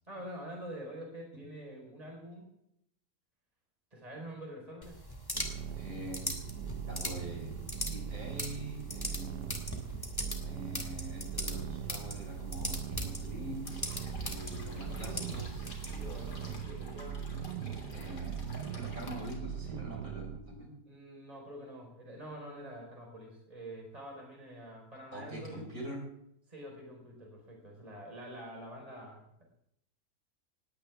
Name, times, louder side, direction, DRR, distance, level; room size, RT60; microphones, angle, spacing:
voice 1, 0.1-2.5 3.9-5.0 14.7-15.2 15.9-17.2 20.8-25.6 26.5-29.4, right 1 dB, 20° right, 0 dB, 4.6 m, -46 dB
sound 1, 4.8-16.5, left 1 dB, 15° left, 2.4 m, -41 dB
sound 2, 5.3-20.4, right 9 dB, 85° right, 1.5 m, -41 dB
voice 2, 5.7-6.4 6.9-7.5 7.9-9.5 10.4-15.7 17.9-18.4 18.7-20.7 25.1-26.0, right 1 dB, 55° right, 0 dB, 5.1 m, -44 dB
sound 3, 13.6-19.4, left 2 dB, 85° left, 3.8 m, -51 dB
19.5 x 17.0 x 3.5 m, 0.76 s
omnidirectional pair, 1.7 m